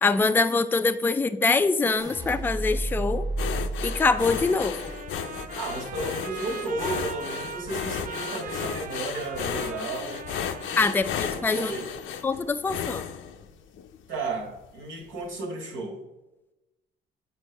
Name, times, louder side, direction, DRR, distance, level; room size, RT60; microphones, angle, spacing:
voice 1, 0.0-3.2 3.8-4.8 10.8-11.7 12.2-13.1, left 3 dB, 10° left, 10 dB, 0.3 m, -24 dB
sound 1, 2.0-8.2 8.5-9.1, right 2 dB, 20° right, 1.1 m, -34 dB
sound 2, 3.4-14.0 14.4-14.6 15.0-15.1, left 8 dB, 80° left, 0.5 m, -34 dB
Trumpet, 3.8-12.0, right 6 dB, 40° right, 0.6 m, -41 dB
voice 2, 5.6-10.3 10.6-11.0 11.3-11.9 14.1-16.0, right 2 dB, 80° right, 1 dB, 1.8 m, -33 dB
8.2 x 4.5 x 3.4 m, 1.0 s
cardioid pair, 90°, 20 cm